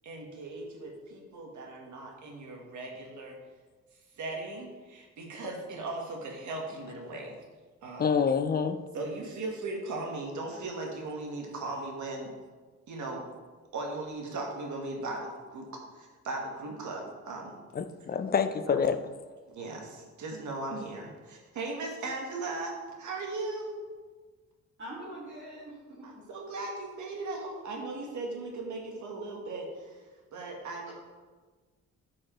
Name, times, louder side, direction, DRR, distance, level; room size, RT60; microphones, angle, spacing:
voice 1, 0.0-3.3 4.2-7.4 7.8-8.1 8.9-12.3 12.9-13.2 13.7-17.6 18.7-18.8 19.5-22.7 23.0-23.7 26.0-30.0 30.3-30.9, right 2 dB, 80° right, 0 dB, 1.3 m, -38 dB
voice 2, 8.0-8.8 17.8-19.0, left 6 dB, 35° left, 9 dB, 0.4 m, -27 dB
voice 3, 24.8-26.2 30.6-30.8, right 1 dB, 40° right, -10 dB, 2.0 m, -44 dB
8.7 x 4.7 x 3.0 m, 1.4 s
cardioid pair, 120°, 29 cm